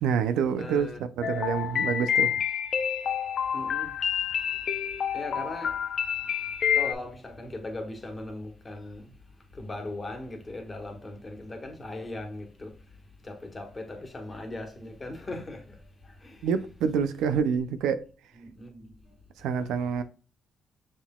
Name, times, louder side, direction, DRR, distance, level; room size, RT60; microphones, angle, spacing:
voice 1, 0.0-0.9 1.2-2.3 16.4-18.0 19.4-20.0, right 7 dB, 85° right, 0.5 m, -27 dB
voice 2, 0.6-1.0 1.3-2.0 3.5-3.9 5.1-5.8 6.7-9.1 9.5-12.7 13.2-15.8 16.0-16.5 18.3-18.9 19.5-19.7, left 2 dB, 25° left, 1.5 m, -39 dB
sound 1, 1.2-6.9, left 9 dB, 55° left, 0.5 m, -28 dB
6.2 x 3.8 x 2.3 m
cardioid pair, 90°, 0 cm